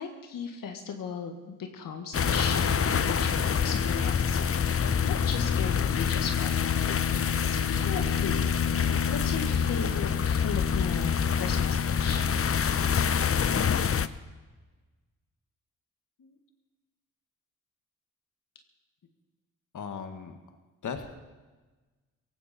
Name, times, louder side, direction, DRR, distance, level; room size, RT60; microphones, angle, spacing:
voice 1, 0.0-6.5 7.4-8.4 9.1-12.2, left 6 dB, 80° left, 4 dB, 1.7 m, -37 dB
sound 1, 2.1-14.1, left 7 dB, 40° left, 0.8 m, -26 dB
voice 2, 19.7-20.4 20.8-21.1, left 6 dB, 65° left, 6 dB, 1.7 m, -37 dB
18.0 x 16.0 x 4.3 m, 1.3 s
supercardioid pair, 55°, 33 cm